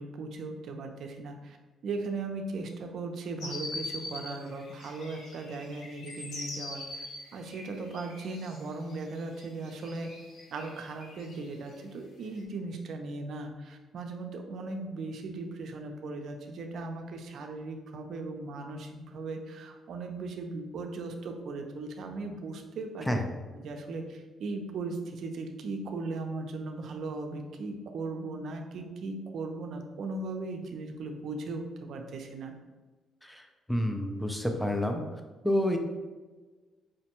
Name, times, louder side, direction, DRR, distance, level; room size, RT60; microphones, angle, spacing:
voice 1, 0.0-1.6 1.8-7.1 7.3-10.1 10.5-23.1 23.5-32.5, right 3 dB, 65° right, 4 dB, 0.5 m, -38 dB
sound 1, 3.4-11.7 12.4-12.5, left 2 dB, 75° left, 0.7 m, -43 dB
voice 2, 33.7-35.0 35.4-35.8, left 1 dB, 5° left, 4 dB, 0.5 m, -28 dB
4.9 x 2.2 x 2.9 m, 1.3 s
cardioid pair, 90°, 0 cm